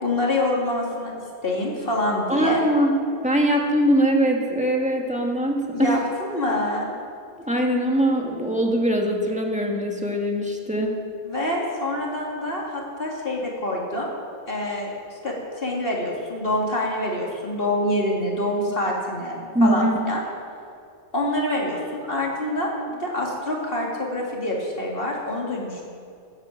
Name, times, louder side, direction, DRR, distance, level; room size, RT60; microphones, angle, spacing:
voice 1, 0.0-1.1 1.4-2.6 5.7-6.9 11.2-14.1 14.5-20.2 21.1-25.8, left 1 dB, 55° left, -2 dB, 2.8 m, -26 dB
voice 2, 2.3-2.9 3.2-6.0 7.4-11.0 19.5-20.0, equal, 5° right, 0 dB, 1.8 m, -22 dB
15.5 x 9.8 x 7.4 m, 2.4 s
omnidirectional pair, 1.1 m